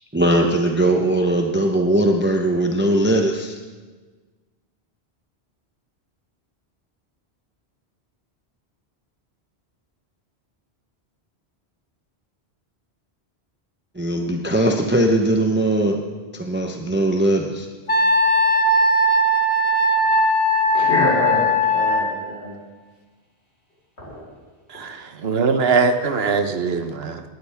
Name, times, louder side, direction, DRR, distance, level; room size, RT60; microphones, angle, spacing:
voice 1, 0.1-3.5 14.0-16.0 16.4-17.7, right 1 dB, 10° right, 2 dB, 0.8 m, -19 dB
Wind instrument woodwind instrument, 17.9-22.1, equal, 60° left, 1.5 m, -18 dB
voice 2, 20.7-22.5 24.0-24.2, equal, 80° left, -4 dB, 4.6 m, -25 dB
voice 3, 24.7-27.2, right 5 dB, 70° right, 8 dB, 1.1 m, -21 dB
18.5 x 12.5 x 3.5 m, 1.4 s
omnidirectional pair, 1.1 m